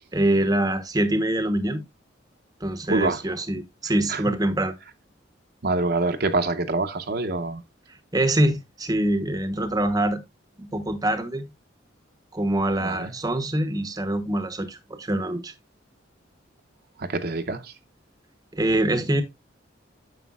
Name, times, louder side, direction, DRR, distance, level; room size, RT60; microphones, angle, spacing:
voice 1, 0.1-1.8 2.6-4.7 8.1-10.2 10.6-11.4 12.3-15.5 18.5-19.2, right 1 dB, 20° right, 0.9 m, -24 dB
voice 2, 2.9-3.2 4.1-4.4 5.6-7.6 12.8-13.1 17.0-17.7, right 3 dB, 50° right, 0.8 m, -26 dB
9.4 x 6.9 x 2.3 m
head